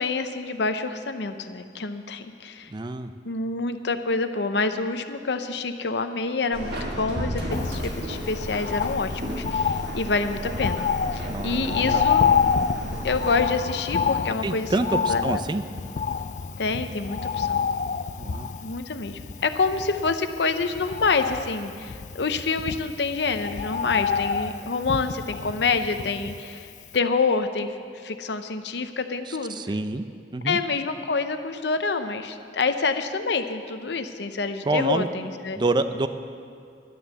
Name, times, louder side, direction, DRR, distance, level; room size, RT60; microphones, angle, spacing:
voice 1, 0.0-2.7 3.2-10.9 11.1-12.3 13.0-15.2 16.6-17.6 18.6-29.6 30.4-35.6, left 4 dB, 75° left, 9 dB, 0.7 m, -27 dB
voice 2, 2.7-3.1 11.3-12.0 14.4-15.6 18.2-18.5 29.3-30.0 30.3-30.6 34.6-35.1 35.6-36.1, right 2 dB, 25° right, 10 dB, 0.4 m, -27 dB
Subway metro underground, 6.5-13.5, right 1 dB, 60° right, 1.7 m, -33 dB
Bird, 7.5-26.6 26.9-27.0, left 6 dB, 45° left, 0.3 m, -28 dB
12.0 x 9.6 x 6.9 m, 2.4 s
head